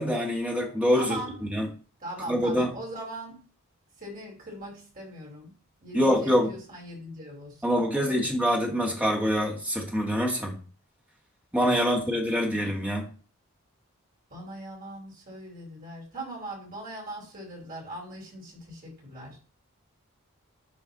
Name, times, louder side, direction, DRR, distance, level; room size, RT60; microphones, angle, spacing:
voice 1, 0.0-1.7 2.3-2.7 5.9-6.5 7.6-10.6 11.5-13.0, equal, 5° right, 1.8 m, -25 dB
voice 2, 0.9-1.4 2.0-3.4 4.0-5.5 5.8-7.6 8.1-8.3 11.6-12.1 14.3-19.4, right 1 dB, 40° right, 4.1 m, -40 dB
11.5 x 4.7 x 4.0 m
head